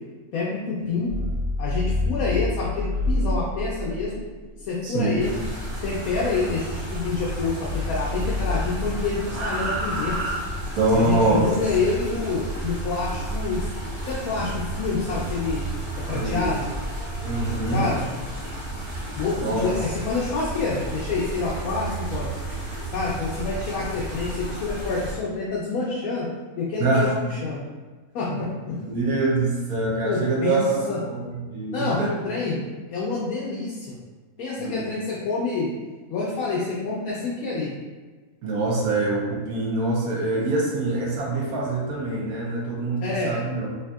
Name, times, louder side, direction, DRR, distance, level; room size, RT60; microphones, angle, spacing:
voice 1, 0.3-1.1 1.6-4.1 4.7-5.4 5.8-10.2 10.9-13.7 14.1-15.6 16.0-16.7 17.7-18.0 19.2-22.3 22.9-26.3 26.6-27.6 28.1-28.8 30.0-30.6 30.9-31.0 31.7-32.0 32.2-32.6 32.9-34.0 34.4-35.7 36.1-37.7 43.0-43.3, left 4 dB, 80° left, -6 dB, 1.1 m, -27 dB
sound 1, 1.0-7.4 7.7-11.1 12.5-13.7 14.4-17.0, left 1 dB, 65° right, 0.9 m, -30 dB
voice 2, 4.8-5.2 10.8-11.5 16.1-16.6 17.2-17.9 19.4-19.8 26.8-27.2 28.3-28.4 28.9-32.1 34.6-34.9 38.4-43.7, right 2 dB, 85° right, -3 dB, 1.2 m, -24 dB
sound 2, 5.2-25.1, right 1 dB, 45° right, 1.2 m, -33 dB
3.5 x 2.7 x 2.3 m, 1.3 s
omnidirectional pair, 1.5 m